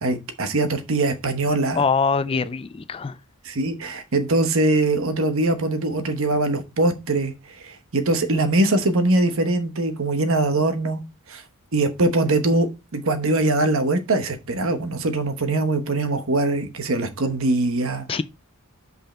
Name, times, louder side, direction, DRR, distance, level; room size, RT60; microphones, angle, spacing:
voice 1, 0.0-1.8 2.3-2.5 3.4-7.3 7.6-11.0 11.3-11.4 11.7-12.7 12.9-18.2, right 2 dB, 65° right, 1.1 m, -22 dB
voice 2, 1.8-3.2 18.1-18.2, left 5 dB, 25° left, 0.3 m, -23 dB
5.6 x 5.4 x 4.3 m
head